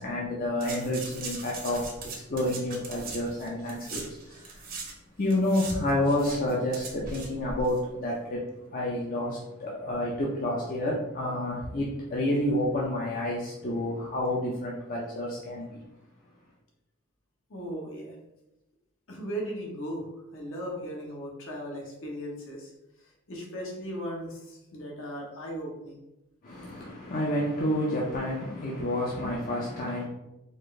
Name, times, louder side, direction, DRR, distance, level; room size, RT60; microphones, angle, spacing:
voice 1, 0.0-4.8 5.2-15.8 26.4-30.0, left 1 dB, 40° left, 0.6 m, -29 dB
sound 1, 0.6-4.9 5.2-7.8 8.0-8.1, right 3 dB, 40° right, 0.7 m, -40 dB
voice 2, 17.5-18.1 19.1-20.0 20.3-22.7 23.3-26.0, equal, 65° left, 1.0 m, -37 dB
4.3 x 2.5 x 3.1 m
head